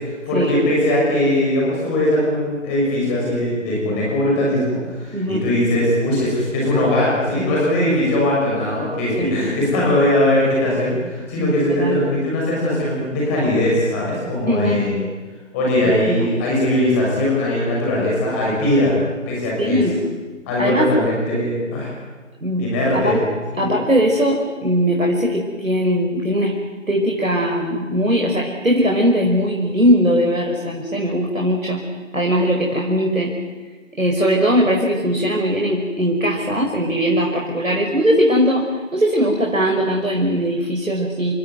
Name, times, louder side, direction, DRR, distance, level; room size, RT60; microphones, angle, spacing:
voice 1, 0.3-15.0 15.5-19.0 19.3-19.8 20.5-21.9 22.6-23.2 23.5-23.7, left 1 dB, 10° left, -4 dB, 6.2 m, -20 dB
voice 2, 5.1-5.4 9.2-9.4 11.4-12.0 14.5-14.8 15.8-16.3 19.6-20.0 20.6-21.0 22.4-22.7 22.9-23.2 23.6-26.5 26.9-31.8 32.1-33.3 34.0-38.7 38.9-41.3, equal, 90° right, -1 dB, 5.5 m, -19 dB
29.5 x 14.5 x 9.4 m, 1.4 s
figure-of-eight pair, 165°, 39 cm